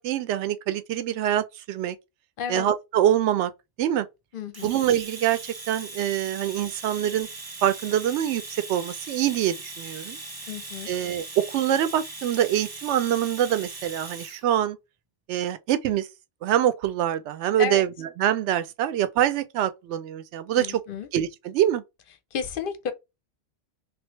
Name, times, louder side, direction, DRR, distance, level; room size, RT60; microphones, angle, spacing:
voice 1, 0.0-2.0 2.5-3.5 3.8-4.1 4.6-7.3 7.6-10.2 10.9-14.8 15.3-16.1 16.4-20.8 21.1-21.8, right 11 dB, 75° right, 0.8 m, -25 dB
voice 2, 4.3-4.7 10.5-10.9 17.6-17.8 20.6-21.1 22.3-22.9, left 7 dB, 55° left, 0.7 m, -32 dB
Domestic sounds home sounds, 4.5-14.4, right 2 dB, 40° right, 0.3 m, -40 dB
3.3 x 2.7 x 3.1 m
omnidirectional pair, 1.2 m